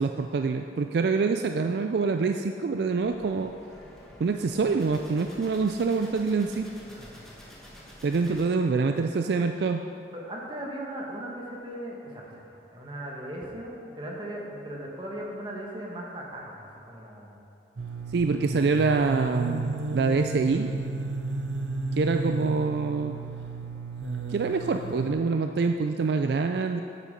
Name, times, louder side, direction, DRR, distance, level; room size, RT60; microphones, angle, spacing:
voice 1, 0.0-3.5 4.2-6.7 8.0-9.8 18.1-20.7 22.0-23.1 24.3-26.8, right 4 dB, 65° right, 6 dB, 0.3 m, -25 dB
sound 1, 3.0-8.5, equal, 5° left, 1.3 m, -49 dB
voice 2, 6.9-7.2 10.1-17.5, right 1 dB, 25° right, -2 dB, 1.4 m, -38 dB
sound 2, 17.8-25.1, right 3 dB, 85° right, 0.7 m, -33 dB
8.3 x 8.3 x 5.1 m, 2.6 s
head